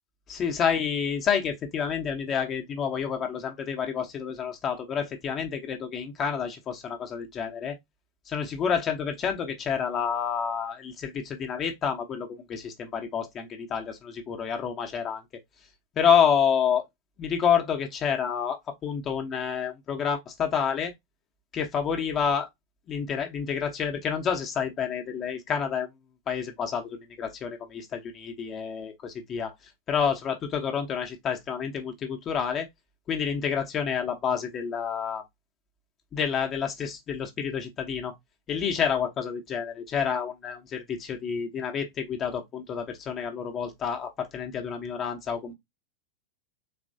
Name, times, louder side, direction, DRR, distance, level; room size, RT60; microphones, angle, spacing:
voice 1, 0.3-7.8 8.3-15.2 15.9-16.8 17.2-20.9 21.5-22.5 22.9-25.9 26.3-29.5 29.9-32.7 33.1-35.2 36.1-38.1 38.5-45.5, left 7 dB, 30° left, 1.0 m, -28 dB
4.2 x 3.1 x 2.6 m
figure-of-eight pair, 90°, 0 cm